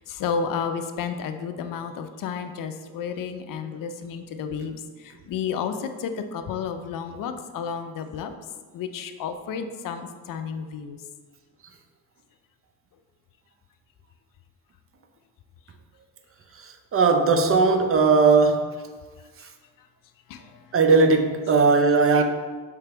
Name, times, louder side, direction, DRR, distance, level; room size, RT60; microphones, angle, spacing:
voice 1, 0.0-4.8 5.3-8.3 8.7-11.0 20.3-20.4 21.9-22.0, left 6 dB, 55° left, 0.5 m, -31 dB
voice 2, 16.9-18.7 20.7-22.2, right 4 dB, 35° right, 0.6 m, -18 dB
3.4 x 3.3 x 4.4 m
hypercardioid pair, 55°, 40 cm